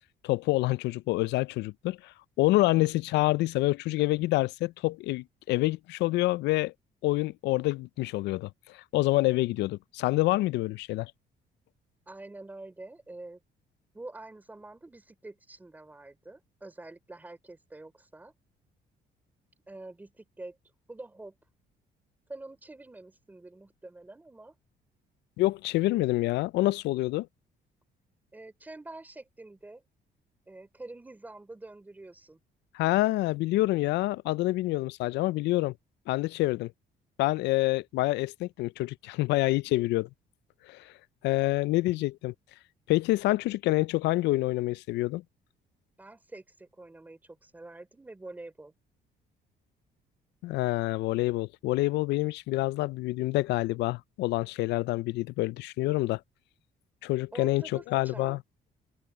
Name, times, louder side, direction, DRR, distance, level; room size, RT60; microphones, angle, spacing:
voice 1, 0.2-6.7 7.0-11.1 25.4-27.3 32.7-35.7 36.1-36.7 37.2-40.1 40.7-40.9 41.2-42.3 42.9-45.2 50.4-56.2 57.0-58.4, left 18 dB, 85° left, 0.4 m, -27 dB
voice 2, 12.1-13.4 13.9-18.3 19.7-20.6 20.9-21.3 22.3-24.5 28.3-29.8 30.5-32.4 46.0-48.7 57.3-58.4, right 2 dB, 10° right, 3.7 m, -46 dB
open air
cardioid pair, 170°, 17 cm